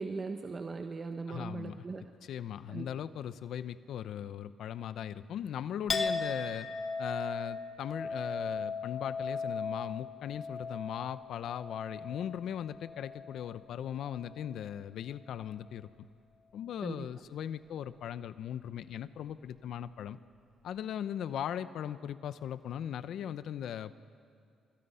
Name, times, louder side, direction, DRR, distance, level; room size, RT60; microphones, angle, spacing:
voice 1, 0.0-2.1 2.7-2.9 16.8-17.0, right 4 dB, 35° right, 6 dB, 1.0 m, -39 dB
voice 2, 1.3-1.8 2.2-6.7 7.0-16.1 16.5-20.2 20.6-23.9, left 9 dB, 75° left, 14 dB, 0.7 m, -39 dB
Chink clink, 5.9-13.6 13.9-14.6, left 4 dB, 35° left, 1.7 m, -38 dB
28.0 x 25.0 x 5.7 m, 2.3 s
cardioid pair, 90°, 0 cm